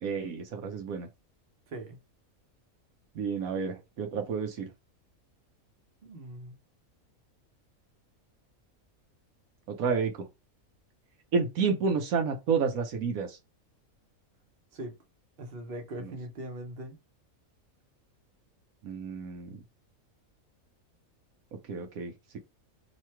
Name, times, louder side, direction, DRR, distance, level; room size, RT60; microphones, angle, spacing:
voice 1, 0.0-1.1 3.1-4.7 9.7-10.3 11.3-13.4 16.0-16.1 18.8-19.6 21.7-22.4, right 5 dB, 80° right, 1.2 m, -30 dB
voice 2, 6.0-6.5 14.7-14.9 15.4-17.0, right 1 dB, 45° right, 1.1 m, -40 dB
3.1 x 2.8 x 4.4 m
omnidirectional pair, 1.5 m